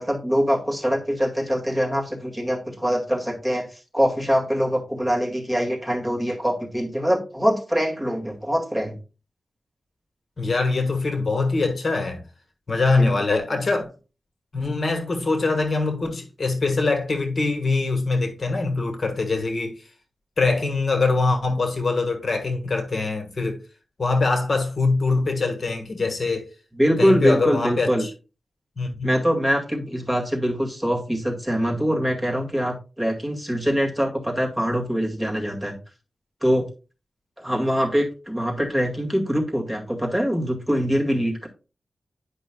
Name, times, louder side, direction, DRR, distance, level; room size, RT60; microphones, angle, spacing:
voice 1, 0.0-9.0 13.0-13.1 26.8-28.1 29.0-35.8 36.4-36.7 37.4-41.5, equal, 10° right, 2.0 m, -23 dB
voice 2, 10.4-12.2 12.7-13.9 14.5-19.8 20.4-23.6 24.0-26.5 27.0-28.1 28.8-29.2, left 3 dB, 50° left, 1.3 m, -23 dB
10.5 x 5.4 x 2.3 m
wide cardioid pair, 105°, 0 cm